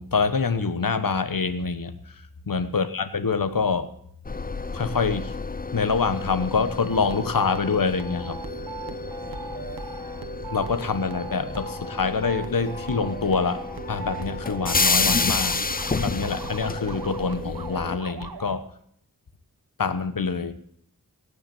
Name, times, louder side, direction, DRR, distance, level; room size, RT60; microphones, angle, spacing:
voice 1, 0.0-1.9 2.5-3.9 4.7-5.4 5.7-8.4 10.5-13.6 13.9-15.6 15.9-18.6 19.8-20.5, left 5 dB, 65° left, 11 dB, 1.2 m, -25 dB
sound 1, 4.2-18.0, left 4 dB, 25° left, 0.6 m, -30 dB
sound 2, 6.9-18.6, right 6 dB, 85° right, 1.2 m, -39 dB
17.5 x 6.9 x 7.1 m, 0.67 s
wide cardioid pair, 50°, 36 cm